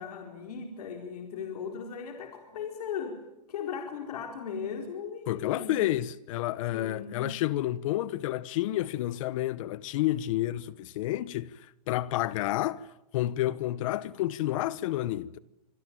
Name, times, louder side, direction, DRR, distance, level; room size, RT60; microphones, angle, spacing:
voice 1, 0.0-3.2 3.5-5.8 6.7-7.3, left 6 dB, 70° left, 4.4 m, -37 dB
voice 2, 5.3-11.5 11.9-12.8 13.1-15.4, left 15 dB, 55° left, 1.0 m, -30 dB
26.0 x 22.0 x 9.0 m
hypercardioid pair, 140°, 20 cm